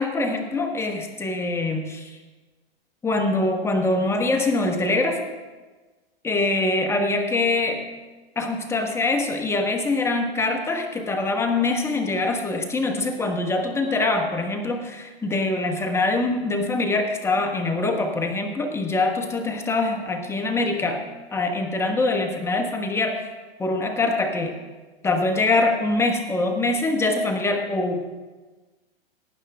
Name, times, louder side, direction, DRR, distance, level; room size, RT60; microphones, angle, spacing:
voice 1, 0.0-2.1 3.0-5.2 6.2-7.8 8.4-21.0 21.3-23.3 23.6-24.5 25.0-28.1, left 2 dB, 10° left, 4 dB, 1.2 m, -24 dB
18.0 x 9.0 x 3.5 m, 1.3 s
hypercardioid pair, 135°, 31 cm